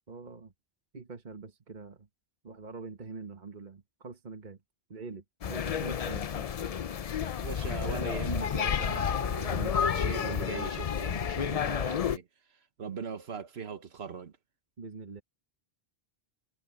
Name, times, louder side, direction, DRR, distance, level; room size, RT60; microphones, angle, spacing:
voice 1, 0.1-0.5 0.9-2.1 2.4-4.6 4.9-6.5 14.8-15.2, right 4 dB, 50° right, 1.4 m, -44 dB
sound 1, 5.4-12.2, left 8 dB, 45° left, 0.5 m, -31 dB
voice 2, 7.4-12.3 12.8-14.3, right 6 dB, 90° right, 1.4 m, -39 dB
omnidirectional pair, 1.0 m